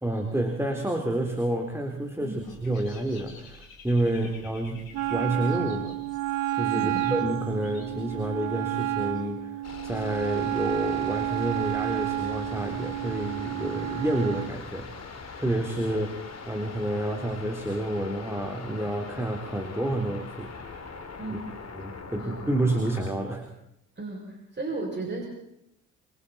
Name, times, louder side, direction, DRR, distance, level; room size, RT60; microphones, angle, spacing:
voice 1, 0.0-6.0 6.5-9.6 9.8-14.9 15.4-20.8 21.3-21.4 21.7-23.5, right 1 dB, 5° right, 2 dB, 3.6 m, -29 dB
Dog / Bird, 2.3-9.3, left 3 dB, 80° left, 3.2 m, -51 dB
Wind instrument woodwind instrument, 4.9-14.5, right 14 dB, 50° right, 0.7 m, -30 dB
voice 2, 6.7-7.1 21.2-21.4 22.2-22.4 24.0-25.3, right 2 dB, 25° right, -1 dB, 6.8 m, -35 dB
sound 1, 9.6-23.1, left 4 dB, 40° left, 3.5 m, -42 dB
27.5 x 25.0 x 4.4 m, 0.82 s
figure-of-eight pair, 40°, 40 cm